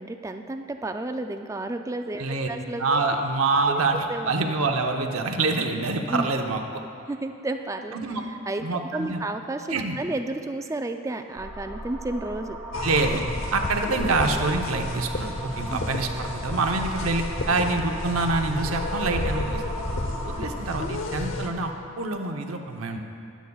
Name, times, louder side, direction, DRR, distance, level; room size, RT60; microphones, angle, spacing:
voice 1, 0.0-3.0 3.7-3.8 4.1-4.3 6.1-6.3 7.1-12.6 14.4-14.5 15.7-15.8 20.4-20.5, right 2 dB, 15° right, 6 dB, 0.3 m, -32 dB
voice 2, 2.8-4.0 4.2-6.8 7.9-8.2 8.6-9.2 9.7-10.0 12.8-13.2 13.5-19.6 20.2-23.0, right 3 dB, 90° right, 4 dB, 0.9 m, -26 dB
sound 1, 11.4-20.6, right 1 dB, ahead, 1.3 m, -37 dB
sound 2, 12.7-21.5, left 1 dB, 70° left, 0.8 m, -32 dB
20.5 x 8.3 x 2.4 m, 2.6 s
head